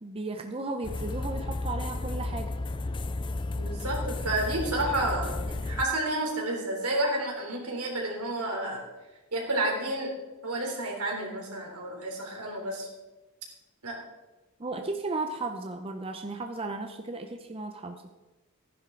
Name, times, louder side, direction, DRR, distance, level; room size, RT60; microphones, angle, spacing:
voice 1, 0.0-2.5 14.6-18.0, right 3 dB, 25° right, 5 dB, 0.6 m, -35 dB
sound 1, 0.8-5.9, left 2 dB, 20° left, 0.3 m, -33 dB
voice 2, 3.5-8.9 9.3-10.1 10.4-12.9 13.8-14.0, right 1 dB, 85° right, 0 dB, 3.4 m, -30 dB
15.0 x 10.5 x 3.8 m, 1.1 s
head